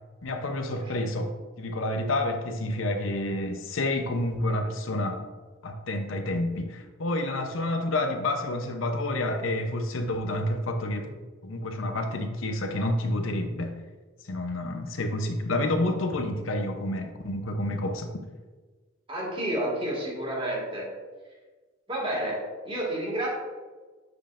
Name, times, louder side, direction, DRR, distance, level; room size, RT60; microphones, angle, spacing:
voice 1, 0.2-5.3 5.6-11.1 11.4-13.8 14.2-18.1, left 1 dB, 85° left, 6 dB, 0.7 m, -29 dB
voice 2, 19.1-20.9 21.9-23.3, right 1 dB, 25° right, -3 dB, 1.9 m, -30 dB
7.9 x 5.2 x 2.5 m, 1.3 s
head